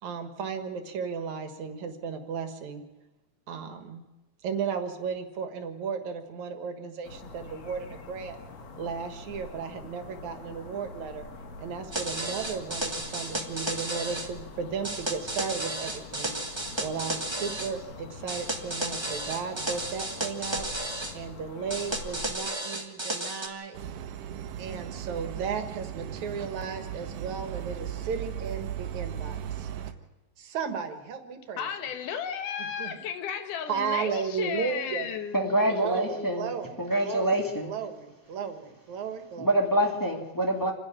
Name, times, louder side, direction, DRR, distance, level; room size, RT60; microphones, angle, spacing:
voice 1, 0.0-2.8 3.5-4.0 4.4-8.4 8.8-11.3 11.6-16.3 16.8-20.7 21.1-23.8 24.6-29.7 30.4-31.7 32.6-33.0 33.7-35.1 35.7-39.6 40.6-40.7, right 6 dB, 65° right, 2.9 m, -35 dB
sound 1, 7.0-22.3, left 3 dB, 55° left, 2.8 m, -45 dB
sound 2, 11.9-14.3 14.8-17.7 18.3-21.1 21.7-23.5, right 1 dB, 40° right, 0.3 m, -33 dB
sound 3, 23.7-29.9, right 9 dB, 80° right, 2.6 m, -37 dB
voice 2, 31.6-35.6, left 8 dB, 80° left, 2.9 m, -34 dB
voice 3, 35.3-36.5 36.8-37.7 39.4-40.7, right 1 dB, 10° left, 1.6 m, -26 dB
28.0 x 10.5 x 8.8 m
omnidirectional pair, 3.7 m